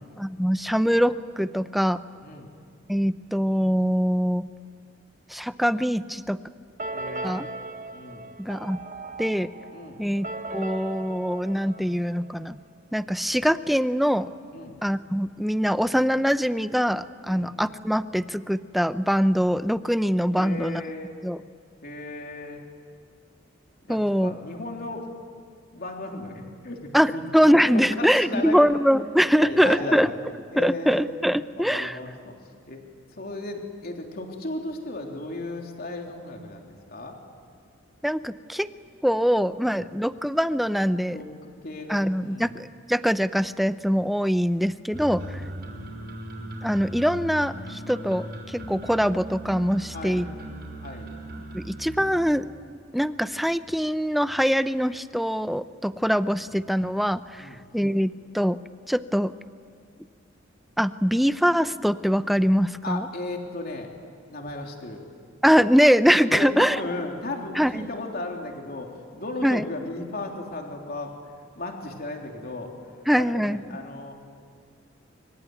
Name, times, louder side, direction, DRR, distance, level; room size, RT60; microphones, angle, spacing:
voice 1, 0.2-2.0 2.9-4.4 5.3-6.4 7.2-7.5 8.4-8.8 9.2-9.5 10.0-10.3 10.5-12.6 12.9-14.3 14.8-20.8 21.2-21.4 23.9-24.3 26.9-30.1 30.6-32.0 38.0-38.7 39.0-41.2 41.9-45.4 46.6-50.3 51.5-52.5 52.9-58.6 58.9-59.3 60.8-63.1 65.4-66.8 67.6-67.7 69.4-69.7 73.1-73.6, equal, ahead, 12 dB, 0.6 m, -23 dB
sound 1, 6.8-12.5, right 2 dB, 40° right, 1.5 m, -38 dB
voice 2, 6.9-7.5 7.9-8.3 9.7-10.0 14.5-14.8 17.2-17.5 20.3-21.2 21.8-22.7 23.8-25.1 25.7-28.6 29.4-30.2 30.5-32.3 32.7-32.8 33.2-37.2 39.7-39.9 41.1-42.5 45.1-45.5 49.9-50.3 50.8-51.1 57.4-57.6 62.8-63.9 64.3-65.0 66.3-71.1 71.5-74.1, left 2 dB, 50° left, 2 dB, 3.3 m, -35 dB
sound 2, 44.9-52.1, right 1 dB, 60° right, 5.8 m, -38 dB
24.5 x 24.0 x 9.4 m, 2.2 s
head